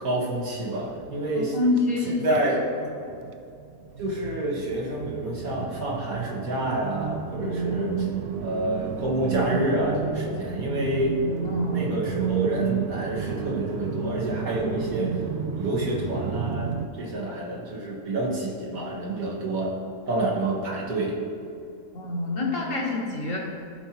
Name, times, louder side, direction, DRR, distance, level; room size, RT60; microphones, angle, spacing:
voice 1, 0.0-1.6 2.1-2.6 4.0-8.1 8.4-11.2 11.7-15.2 15.5-19.8 20.1-21.2, right 1 dB, 60° right, -3 dB, 2.0 m, -28 dB
sound 1, 0.7-3.3 3.6-16.9, right 6 dB, 90° right, 0.5 m, -31 dB
voice 2, 1.3-2.4 2.9-3.1 11.4-11.8 21.9-23.4, left 2 dB, 55° left, -3 dB, 1.9 m, -27 dB
14.5 x 5.4 x 3.0 m, 2.5 s
omnidirectional pair, 1.7 m